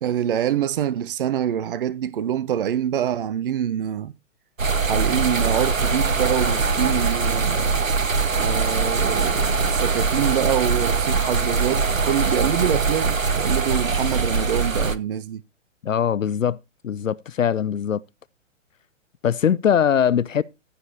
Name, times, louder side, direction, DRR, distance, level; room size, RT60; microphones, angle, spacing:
voice 1, 0.0-4.1 4.8-7.8 8.4-15.4, right 10 dB, 45° right, 0.5 m, -25 dB
sound 1, 4.6-15.0, right 4 dB, 90° right, 0.8 m, -22 dB
voice 2, 15.8-16.6 16.8-18.0 19.2-20.4, left 8 dB, 80° left, 0.5 m, -21 dB
15.0 x 5.2 x 4.3 m
figure-of-eight pair, 115°, 39 cm